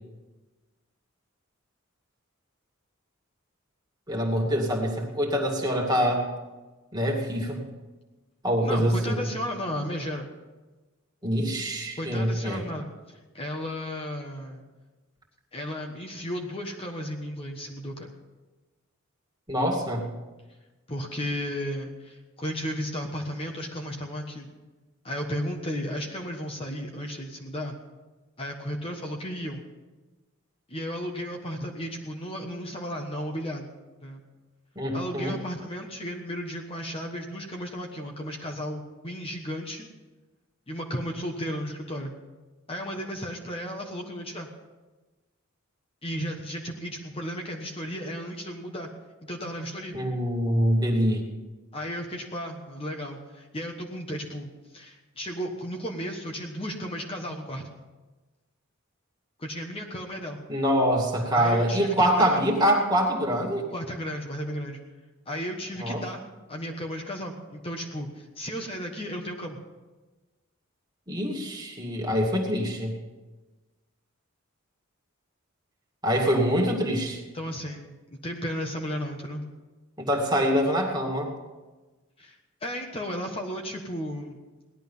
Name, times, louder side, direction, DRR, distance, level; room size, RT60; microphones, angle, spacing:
voice 1, 4.1-6.3 6.9-7.6 8.4-9.3 11.2-12.6 19.5-20.1 34.8-35.4 49.9-51.2 60.5-63.6 65.8-66.0 71.1-72.9 76.0-77.2 80.0-81.3, equal, 20° right, 0 dB, 2.3 m, -25 dB
voice 2, 8.6-10.3 12.0-14.6 15.5-18.1 20.9-24.5 25.0-27.7 28.4-29.6 30.7-33.7 34.0-34.2 34.9-39.9 40.7-42.1 42.7-44.5 46.0-48.9 49.2-50.0 51.7-57.7 59.4-60.4 61.3-62.4 63.7-64.8 65.3-66.2 66.5-69.6 77.3-77.9 78.2-79.4 82.2-82.4 82.6-84.4, equal, 25° left, 1 dB, 1.3 m, -34 dB
17.5 x 11.5 x 5.6 m, 1.2 s
head